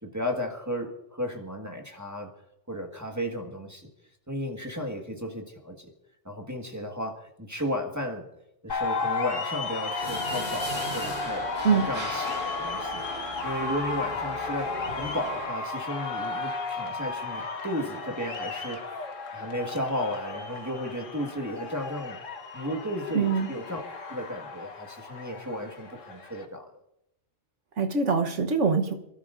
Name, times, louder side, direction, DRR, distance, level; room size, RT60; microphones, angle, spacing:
voice 1, 0.0-2.3 2.7-3.9 4.3-5.9 6.2-8.3 8.6-18.8 19.3-22.2 22.5-26.7, equal, 15° right, 2 dB, 1.7 m, -34 dB
sound 1, 8.7-26.5, left 4 dB, 85° left, 1.7 m, -34 dB
sound 2, 10.0-15.5, equal, 50° right, 4.8 m, -38 dB
voice 2, 23.1-23.5 27.8-28.9, right 5 dB, 70° right, 5 dB, 1.5 m, -23 dB
28.0 x 13.0 x 2.6 m, 0.83 s
omnidirectional pair, 1.3 m